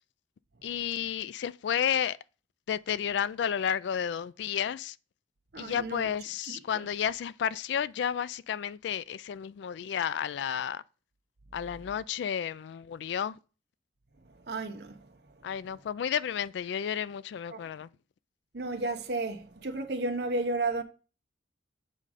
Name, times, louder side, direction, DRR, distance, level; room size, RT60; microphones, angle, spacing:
voice 1, 0.6-2.2 2.7-5.0 5.6-10.8 11.5-13.4 15.4-17.9, left 8 dB, 70° left, 0.3 m, -32 dB
voice 2, 5.5-6.1 6.5-6.6 14.5-15.0 17.5-17.6 18.5-20.8, right 2 dB, 60° right, 0.8 m, -32 dB
7.6 x 3.7 x 4.9 m
head